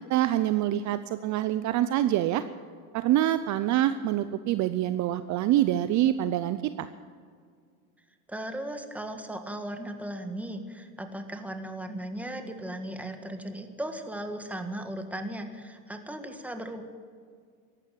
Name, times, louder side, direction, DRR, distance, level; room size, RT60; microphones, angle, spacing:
voice 1, 0.1-2.4 2.9-6.9, right 13 dB, 40° right, 12 dB, 0.6 m, -25 dB
voice 2, 8.3-16.8, right 1 dB, 5° right, 6 dB, 1.6 m, -37 dB
14.5 x 11.5 x 8.4 m, 2.1 s
supercardioid pair, 120°, 44 cm